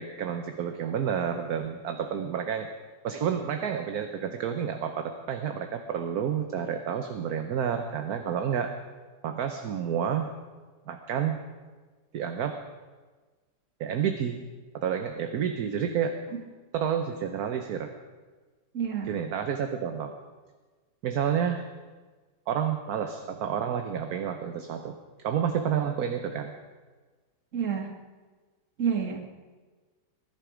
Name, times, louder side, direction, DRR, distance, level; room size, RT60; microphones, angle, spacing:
voice 1, 0.0-2.7 3.0-8.7 9.2-10.3 10.9-11.4 12.1-12.6 13.8-14.4 14.7-16.2 16.7-17.9 19.0-20.1 21.0-21.6 22.5-26.5, right 8 dB, 60° right, 6 dB, 1.3 m, -30 dB
voice 2, 18.7-19.1 27.5-27.9 28.8-29.2, right 7 dB, 45° right, 4 dB, 1.9 m, -28 dB
20.5 x 11.5 x 5.1 m, 1.3 s
omnidirectional pair, 1.9 m